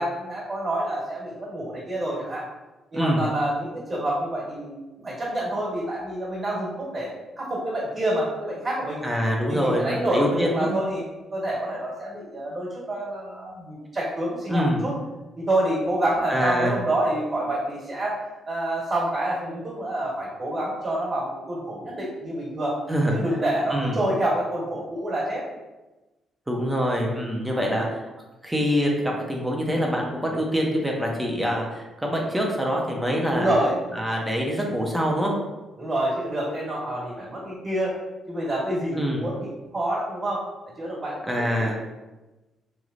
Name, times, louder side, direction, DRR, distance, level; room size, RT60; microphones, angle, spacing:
voice 1, 0.0-2.5 2.9-4.8 5.0-9.0 9.5-14.9 15.4-22.8 23.1-25.4 27.5-27.9 33.3-33.8 35.8-37.9 38.3-40.5 40.8-41.7, right 1 dB, 40° right, -7 dB, 1.4 m, -27 dB
voice 2, 9.0-10.7 14.5-14.8 16.3-16.7 22.9-23.2 23.7-24.0 26.5-28.0 28.4-33.5 33.9-35.3 38.9-39.3 41.3-41.9, equal, 10° right, -1 dB, 0.7 m, -25 dB
3.2 x 3.0 x 2.5 m, 1.1 s
cardioid pair, 90°, 0 cm